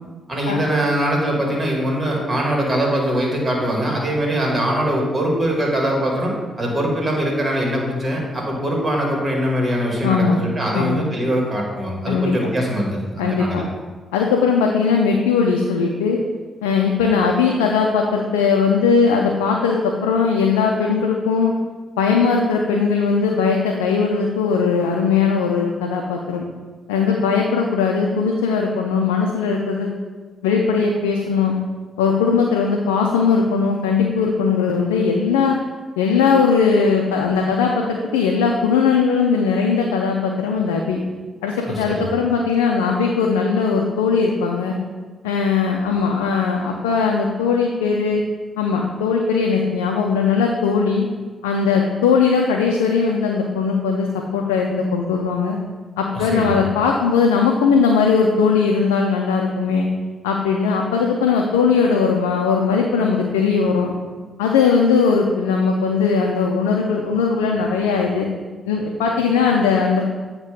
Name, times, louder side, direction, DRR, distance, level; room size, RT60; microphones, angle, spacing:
voice 1, 0.3-13.6 41.7-42.1 56.1-56.6, equal, 40° right, -1 dB, 2.0 m, -22 dB
voice 2, 10.0-10.4 10.7-11.0 12.0-12.3 13.2-13.6 14.1-16.2 16.6-21.5 22.0-26.5 26.9-29.9 30.4-31.5 32.0-35.6 36.0-41.0 41.4-44.8 45.2-48.2 48.6-51.1 51.4-54.1 54.3-55.6 56.0-59.9 60.2-63.9 64.4-68.3 68.7-70.0, left 5 dB, 90° left, 1 dB, 0.4 m, -19 dB
8.2 x 2.9 x 5.1 m, 1.4 s
hypercardioid pair, 45°, 0 cm